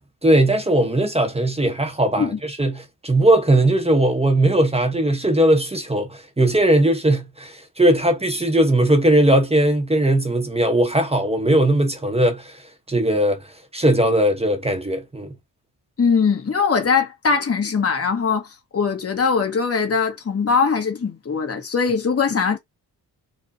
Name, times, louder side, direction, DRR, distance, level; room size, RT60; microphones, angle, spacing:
voice 1, 0.2-12.6 12.9-13.5 13.7-15.3, right 1 dB, 15° right, 0.9 m, -19 dB
voice 2, 16.0-18.5 18.7-22.6, left 5 dB, 35° left, 1.3 m, -21 dB
4.7 x 2.4 x 2.6 m
cardioid pair, 90°, 40 cm